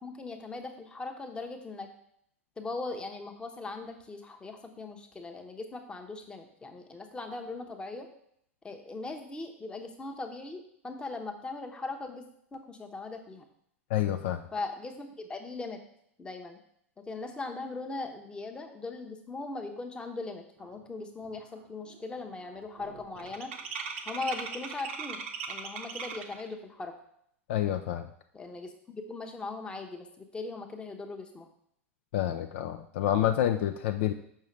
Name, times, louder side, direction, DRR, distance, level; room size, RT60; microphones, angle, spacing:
voice 1, 0.0-1.9 2.6-8.1 8.6-12.2 12.5-13.4 14.5-15.8 16.2-16.6 17.1-23.5 24.0-25.2 25.5-26.9 28.3-31.5, left 3 dB, 15° left, 4 dB, 0.8 m, -39 dB
voice 2, 13.9-14.4 27.5-28.1 32.1-34.1, left 11 dB, 55° left, 7 dB, 0.4 m, -28 dB
sound 1, 20.8-20.9 21.2-21.6 21.8-26.5, right 5 dB, 60° right, 0.8 m, -39 dB
6.6 x 5.6 x 3.2 m, 0.70 s
figure-of-eight pair, 90°, 7 cm